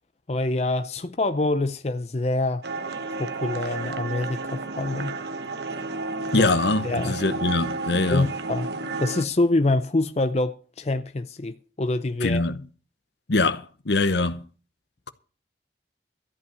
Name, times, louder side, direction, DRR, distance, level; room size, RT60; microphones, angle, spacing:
voice 1, 0.3-2.6 3.2-5.1 6.4-6.5 6.8-7.2 8.1-8.7 9.0-12.5, left 2 dB, 35° left, 0.5 m, -25 dB
sound 1, 2.6-9.2, right 3 dB, 65° right, 1.1 m, -32 dB
voice 2, 6.3-8.3 12.2-12.6 13.3-14.4, left 3 dB, 70° left, 0.9 m, -23 dB
14.0 x 5.7 x 9.6 m
head